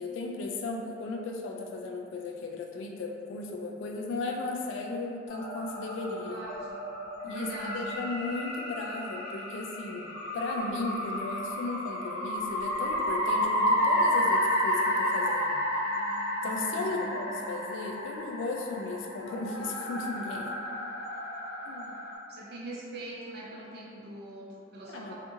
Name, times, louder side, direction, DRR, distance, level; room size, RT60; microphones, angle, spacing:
voice 1, 0.0-6.4 7.2-10.1 10.3-15.6 16.4-20.5 21.7-21.9 24.9-25.1, left 3 dB, 80° left, 1 dB, 0.3 m, -36 dB
sound 1, 5.3-22.1, equal, 60° left, 0.8 m, -31 dB
voice 2, 6.3-6.8 7.3-7.9 16.8-17.2 22.3-25.1, right 1 dB, 60° right, -5 dB, 0.5 m, -42 dB
2.5 x 2.5 x 2.6 m, 2.5 s
head